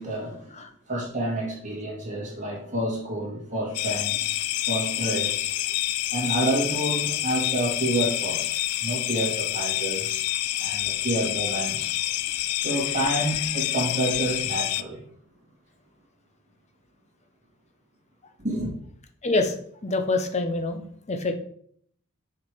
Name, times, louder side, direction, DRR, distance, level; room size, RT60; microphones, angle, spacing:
voice 1, 0.0-5.5 6.1-10.3 10.6-11.9 12.5-15.0 18.4-18.7, right 1 dB, 35° right, 2.5 m, -29 dB
sound 1, 3.7-14.8, left 15 dB, 80° left, 0.4 m, -28 dB
voice 2, 19.2-19.6 19.8-21.3, left 2 dB, 30° left, 0.8 m, -26 dB
6.5 x 4.8 x 5.0 m
head